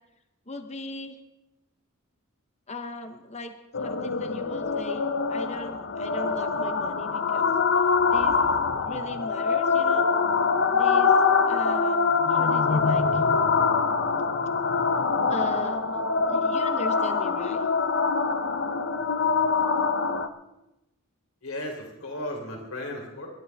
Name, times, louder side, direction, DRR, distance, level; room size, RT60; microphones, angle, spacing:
voice 1, 0.5-1.2 2.7-3.5 3.8-7.5 8.1-8.4 8.8-10.1 10.7-11.2 11.5-13.2 15.3-16.0 16.3-17.6, left 2 dB, 30° left, 8 dB, 0.9 m, -38 dB
sound 1, 3.7-20.3, left 5 dB, 55° left, 0.8 m, -24 dB
voice 2, 21.4-23.3, left 1 dB, 75° left, 1 dB, 3.5 m, -35 dB
26.0 x 12.0 x 3.5 m, 0.93 s
head